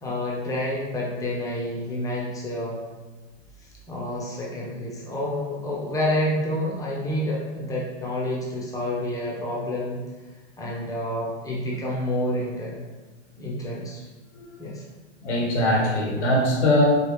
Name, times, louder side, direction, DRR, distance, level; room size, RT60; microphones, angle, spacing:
voice 1, 0.0-2.8 3.9-10.0 10.6-12.8 13.4-14.0 14.6-14.8, left 1 dB, 10° left, -4 dB, 0.7 m, -28 dB
voice 2, 15.2-16.8, left 1 dB, 90° left, -2 dB, 1.4 m, -21 dB
4.7 x 2.3 x 3.3 m, 1.2 s
supercardioid pair, 140°, 34 cm